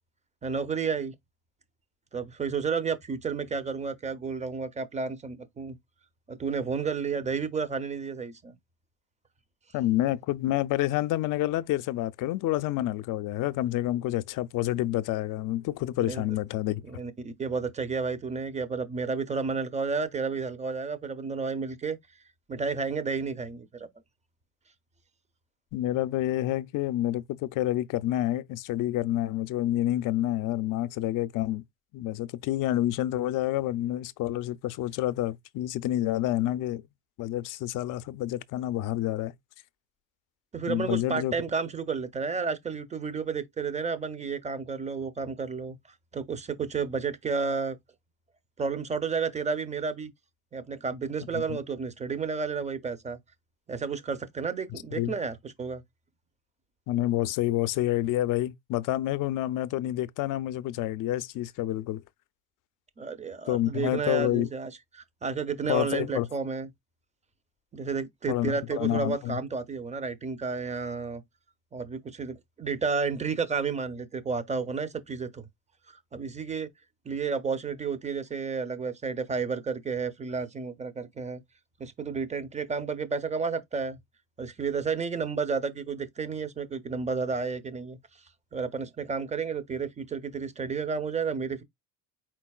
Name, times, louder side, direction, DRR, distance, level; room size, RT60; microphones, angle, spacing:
voice 1, 0.4-1.1 2.1-5.8 6.3-8.5 16.1-16.2 16.9-22.0 22.5-23.9 40.5-45.8 46.1-47.8 48.6-50.1 50.5-53.2 53.7-55.8 63.0-66.7 67.7-71.2 71.7-75.4 76.1-76.7 77.1-81.4 81.8-84.0 84.4-88.0 88.5-91.6, right 5 dB, 20° right, 0.6 m, -31 dB
voice 2, 9.7-16.8 25.7-31.6 31.9-36.8 37.2-39.3 40.7-41.3 51.3-51.6 55.0-55.1 56.9-62.0 63.5-64.5 65.7-66.3 68.3-69.4, left 14 dB, 55° left, 0.5 m, -28 dB
4.5 x 4.1 x 2.3 m
supercardioid pair, 95°, 39 cm